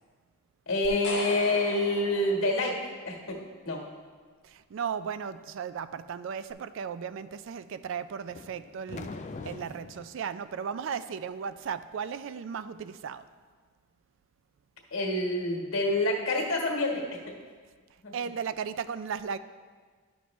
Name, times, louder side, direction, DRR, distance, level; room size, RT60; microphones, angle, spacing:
voice 1, 0.7-2.8 3.0-3.4 3.6-3.8 14.9-17.3 18.0-18.1, left 2 dB, 75° left, -1 dB, 1.5 m, -27 dB
sound 1, 0.8-3.1, left 3 dB, 55° left, 0.9 m, -40 dB
voice 2, 4.4-9.1 9.4-13.2 18.1-19.4, right 7 dB, 65° right, 13 dB, 0.3 m, -36 dB
sound 2, 8.3-10.1, left 3 dB, 35° left, 0.3 m, -42 dB
10.5 x 6.1 x 3.1 m, 1.5 s
head